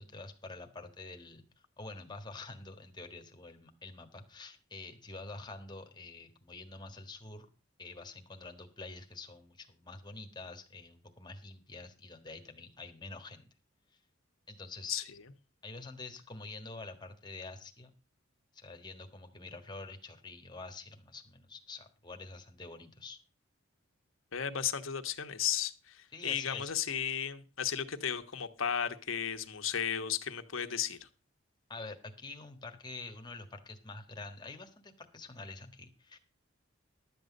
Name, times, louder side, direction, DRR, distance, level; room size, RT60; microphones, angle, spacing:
voice 1, 0.0-1.5 1.8-7.5 7.8-13.4 14.5-15.0 15.6-17.9 18.5-23.2 26.1-26.7 31.7-36.2, left 3 dB, 20° left, 6 dB, 1.5 m, -47 dB
voice 2, 24.3-31.1, left 8 dB, 80° left, 7 dB, 1.1 m, -34 dB
12.0 x 8.0 x 5.2 m, 0.34 s
head